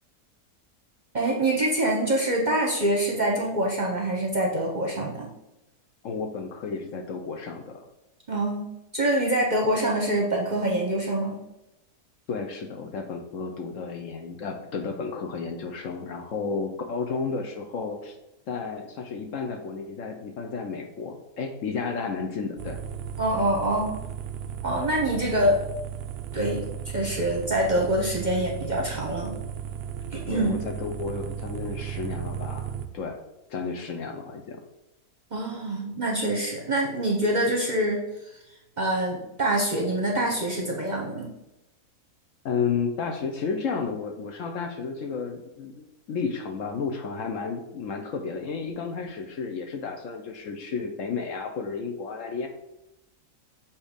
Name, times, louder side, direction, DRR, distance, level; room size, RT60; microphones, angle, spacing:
voice 1, 1.1-5.3 8.3-8.6 8.9-11.4 23.2-23.9 24.6-25.6 26.3-26.7 26.9-29.4 30.1-30.5 35.3-38.0 38.8-41.3, right 1 dB, 40° right, -1 dB, 0.8 m, -25 dB
voice 2, 6.0-7.8 12.3-18.2 18.5-22.8 30.3-33.2 33.5-34.6 42.4-52.5, left 5 dB, 65° left, 4 dB, 0.9 m, -32 dB
sound 1, 22.6-32.9, right 9 dB, 85° right, 0.5 m, -35 dB
7.0 x 3.0 x 5.0 m, 0.92 s
omnidirectional pair, 1.6 m